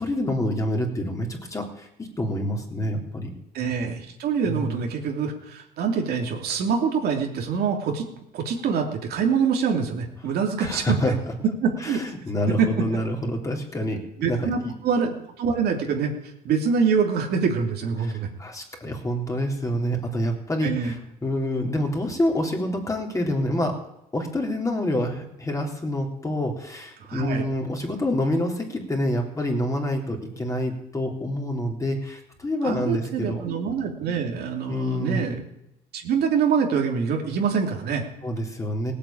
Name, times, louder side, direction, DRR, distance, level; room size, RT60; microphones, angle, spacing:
voice 1, 0.0-3.3 4.5-4.8 10.6-11.1 11.8-14.7 18.0-21.0 21.2-23.8 24.1-33.4 34.7-35.2 38.2-38.9, left 1 dB, 20° left, 1 dB, 3.6 m, -27 dB
voice 2, 3.5-8.0 8.3-11.1 11.6-12.0 12.6-13.0 14.2-16.1 16.4-18.3 20.6-20.9 27.0-27.5 32.6-35.4 35.9-38.0, right 6 dB, 70° right, 2 dB, 3.1 m, -25 dB
17.5 x 8.6 x 8.9 m, 0.84 s
cardioid pair, 110°, 17 cm